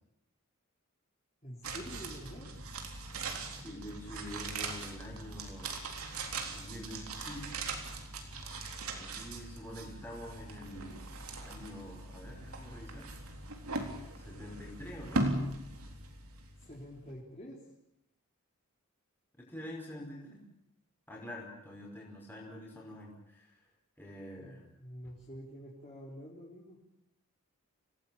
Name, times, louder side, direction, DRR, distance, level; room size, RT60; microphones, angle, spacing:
voice 1, 1.4-2.5 16.6-17.6 24.4-26.8, equal, 30° left, -3 dB, 4.1 m, -47 dB
sound 1, 1.6-16.8 17.1-17.2, right 2 dB, 80° right, 3.7 m, -40 dB
voice 2, 3.5-5.7 6.0-7.6 8.9-11.1 11.4-13.1 14.2-15.2 19.4-20.4 21.1-23.6 24.0-24.6, left 1 dB, 10° left, -2 dB, 5.2 m, -46 dB
28.5 x 18.5 x 9.0 m, 0.82 s
head